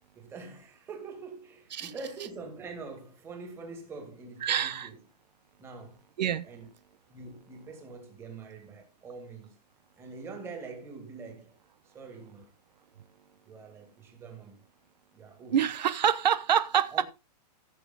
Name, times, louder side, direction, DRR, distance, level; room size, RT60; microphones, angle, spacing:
voice 1, 0.1-5.0 5.6-6.0 6.4-6.7 7.1-9.5 10.0-11.6 11.8-12.5 13.5-14.6 15.1-15.6 16.9-17.0, right 4 dB, 10° right, 2.4 m, -44 dB
voice 2, 4.4-4.9 6.2-6.5 15.5-17.0, right 9 dB, 90° right, 1.1 m, -26 dB
15.0 x 6.9 x 3.9 m
supercardioid pair, 175°, 21 cm